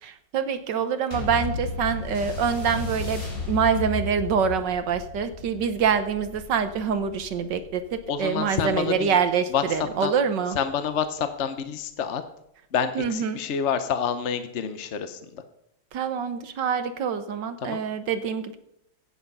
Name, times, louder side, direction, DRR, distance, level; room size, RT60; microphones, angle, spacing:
voice 1, 0.0-10.6 12.9-13.4 15.9-18.6, right 6 dB, 60° right, 10 dB, 1.4 m, -25 dB
sound 1, 1.1-9.9 10.6-10.7, left 4 dB, 40° left, 3.7 m, -35 dB
voice 2, 8.1-9.2 9.5-10.1 10.5-12.2 12.7-15.4 17.6-17.8, left 7 dB, 65° left, 10 dB, 0.7 m, -28 dB
15.5 x 8.2 x 5.4 m, 0.77 s
omnidirectional pair, 2.4 m